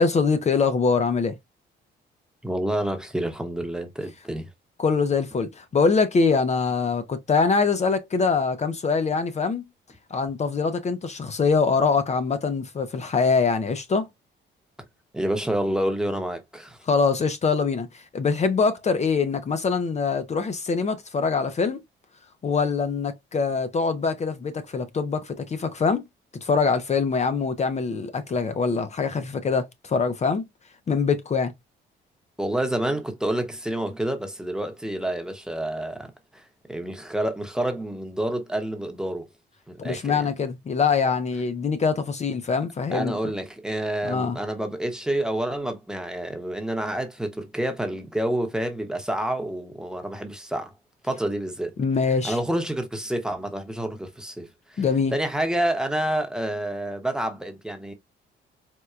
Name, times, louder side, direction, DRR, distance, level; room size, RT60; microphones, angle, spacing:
voice 1, 0.0-1.4 4.8-9.6 10.1-14.1 16.9-21.8 22.4-26.0 26.4-30.4 30.9-31.5 39.8-43.2 44.0-44.4 51.8-52.4 54.8-55.1, left 5 dB, 35° left, 0.5 m, -23 dB
voice 2, 2.4-4.5 15.1-16.8 32.4-36.4 36.7-39.2 39.7-40.3 42.9-50.7 51.0-51.8 52.2-54.8 55.1-57.9, right 1 dB, 5° right, 0.9 m, -28 dB
4.4 x 2.2 x 2.4 m
cardioid pair, 90°, 20 cm